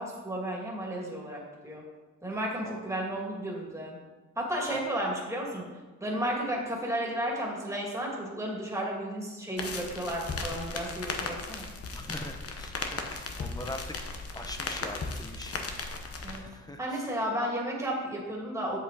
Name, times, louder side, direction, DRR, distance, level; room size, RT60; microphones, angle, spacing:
voice 1, 0.0-1.8 2.2-4.0 4.4-5.7 6.0-11.7 16.2-16.4 16.8-18.8, right 1 dB, 10° right, -2 dB, 2.3 m, -33 dB
voice 2, 2.6-3.0 4.7-4.8 11.9-14.0 14.3-15.5 16.3-17.1, left 1 dB, 15° left, 5 dB, 0.8 m, -42 dB
sound 1, 9.6-16.4, left 3 dB, 55° left, 1.0 m, -36 dB
7.7 x 7.7 x 4.1 m, 1.2 s
wide cardioid pair, 105°, 29 cm